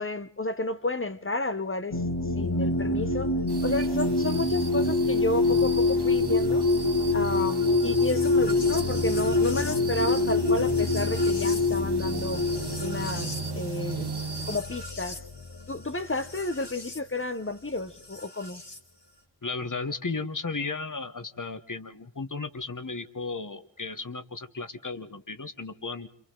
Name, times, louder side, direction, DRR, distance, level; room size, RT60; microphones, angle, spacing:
voice 1, 0.0-2.0 2.3-3.3 3.6-6.6 7.1-12.4 12.8-14.2 14.4-15.2 15.7-18.6, left 2 dB, 30° left, 1.0 m, -31 dB
sound 1, 1.9-17.0 18.1-18.8, left 2 dB, 65° left, 2.2 m, -26 dB
sound 2, 3.5-14.6, right 5 dB, 60° right, 1.5 m, -39 dB
voice 2, 19.4-26.1, left 4 dB, 45° left, 1.3 m, -35 dB
30.0 x 27.0 x 3.8 m
wide cardioid pair, 50°, 45 cm